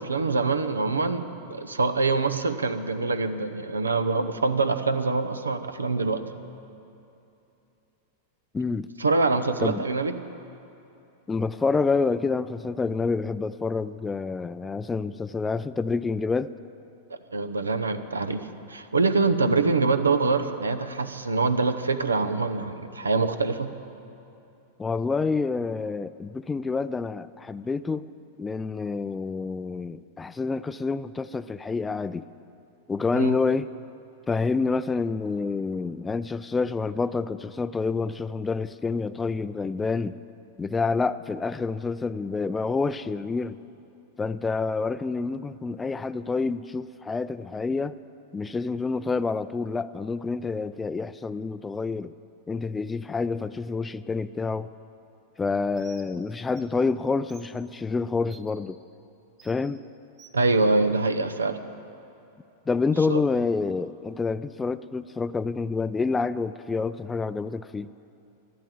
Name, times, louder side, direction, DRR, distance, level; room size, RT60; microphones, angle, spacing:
voice 1, 0.0-6.2 9.0-10.1 17.3-23.7 33.1-33.3 60.3-61.6 63.1-63.2, right 3 dB, 90° right, 9 dB, 0.7 m, -25 dB
voice 2, 8.5-8.9 9.6-9.8 11.3-16.5 24.8-28.1 28.4-32.3 32.9-33.7 34.3-40.2 40.6-43.6 44.2-47.9 48.3-52.1 52.5-54.7 55.4-58.8 59.4-59.8 62.7-67.9, left 4 dB, 15° left, 13 dB, 0.4 m, -28 dB
Bird, 55.7-56.1 56.5-56.6 57.3-57.5 58.3-58.5 59.4-59.6 60.2-60.4, right 7 dB, 35° right, 2.3 m, -51 dB
12.5 x 12.0 x 7.6 m, 2.8 s
hypercardioid pair, 100°, 0 cm